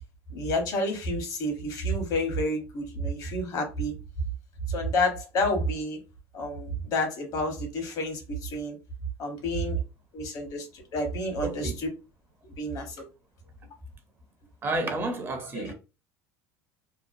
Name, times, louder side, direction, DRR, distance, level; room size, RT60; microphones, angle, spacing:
voice 1, 0.3-3.9 4.7-6.0 6.3-8.8 9.2-9.8 10.1-11.9 12.4-13.0 15.5-15.7, left 1 dB, 55° left, 1.1 m, -29 dB
voice 2, 11.4-11.7 14.6-15.7, right 2 dB, 30° right, 0.7 m, -30 dB
2.8 x 2.1 x 2.5 m
supercardioid pair, 95°, 8 cm